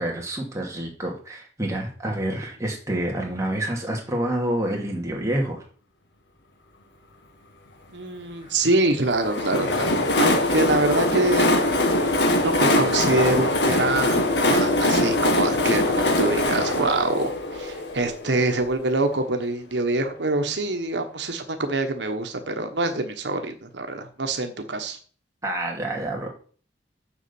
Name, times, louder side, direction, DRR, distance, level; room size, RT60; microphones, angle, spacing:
voice 1, 0.0-5.6 8.4-8.5 25.4-26.3, right 1 dB, 15° right, -1 dB, 2.7 m, -28 dB
voice 2, 7.9-11.5 12.4-15.8 16.2-25.0, right 2 dB, 90° right, 6 dB, 1.3 m, -25 dB
Train, 9.1-18.7, left 1 dB, 80° left, 1.7 m, -22 dB
7.2 x 6.4 x 7.1 m, 0.42 s
head